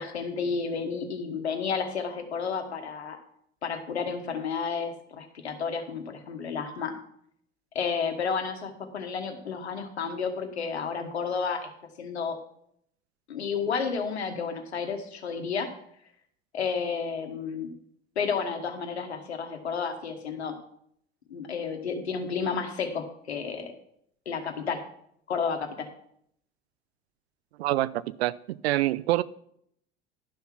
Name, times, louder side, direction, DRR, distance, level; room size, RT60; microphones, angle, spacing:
voice 1, 0.0-3.2 3.6-6.9 7.7-11.7 12.0-12.4 13.3-15.7 16.5-17.7 18.1-20.5 21.3-23.7 24.2-24.8 25.3-25.9, left 5 dB, 85° left, 6 dB, 1.3 m, -31 dB
voice 2, 27.6-29.2, right 16 dB, 75° right, 19 dB, 0.5 m, -26 dB
11.5 x 5.8 x 5.9 m, 0.70 s
hypercardioid pair, 70°, 32 cm